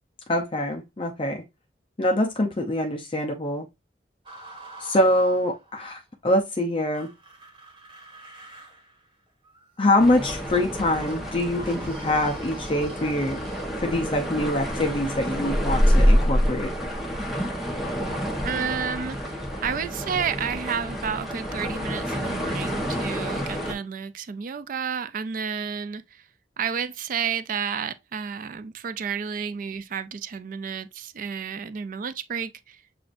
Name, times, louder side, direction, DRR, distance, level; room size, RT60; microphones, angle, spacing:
voice 1, 0.3-1.4 2.0-3.7 4.8-7.1 9.8-13.4 13.8-16.7, left 1 dB, 30° left, 0.6 m, -24 dB
sound 1, 4.3-5.9 6.9-13.7, right 2 dB, 30° right, 1.4 m, -47 dB
sound 2, 10.0-23.7, equal, ahead, 1.0 m, -27 dB
voice 2, 18.4-19.3 19.6-26.2 26.6-32.8, right 7 dB, 50° right, 0.4 m, -31 dB
7.7 x 2.6 x 2.5 m
head